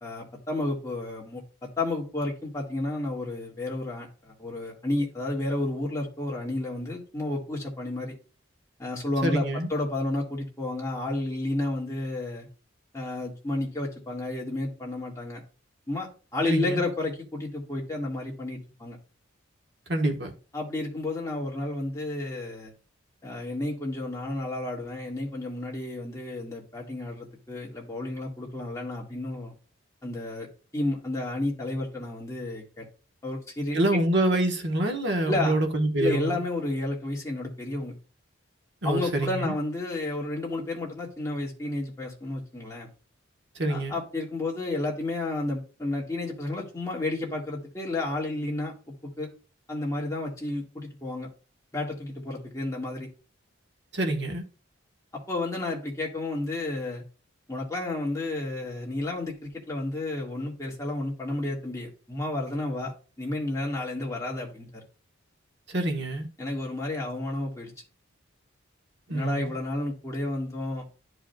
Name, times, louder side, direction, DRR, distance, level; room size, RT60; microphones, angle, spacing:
voice 1, 0.0-1.4 1.8-8.1 8.8-12.5 12.9-15.4 15.9-19.0 20.5-22.7 23.2-29.5 30.0-30.5 30.7-32.9 33.2-34.0 35.3-35.5 36.0-37.9 38.8-42.9 43.7-48.7 49.2-49.3 49.7-51.3 51.7-53.1 55.3-57.0 57.5-62.9 63.2-64.8 66.4-67.7 69.1-70.8, left 2 dB, 15° left, 1.7 m, -31 dB
voice 2, 9.2-9.7 16.5-16.8 19.9-20.3 33.7-36.4 38.8-39.5 43.5-43.9 53.9-54.4 65.7-66.3 69.1-69.5, right 1 dB, 55° right, 1.2 m, -26 dB
11.0 x 4.9 x 2.2 m
head